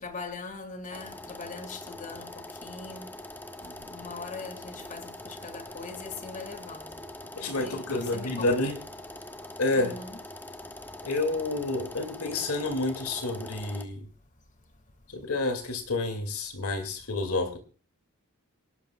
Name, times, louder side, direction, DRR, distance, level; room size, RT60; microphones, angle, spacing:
voice 1, 0.0-3.1 3.6-7.0 7.6-8.8 9.7-10.2, left 4 dB, 35° left, 2.0 m, -41 dB
sound 1, 0.9-13.8, left 1 dB, 10° left, 1.1 m, -43 dB
voice 2, 7.2-8.8 9.6-9.9 11.0-14.1 15.1-17.6, left 2 dB, 80° left, 2.3 m, -29 dB
27.0 x 12.0 x 2.3 m
head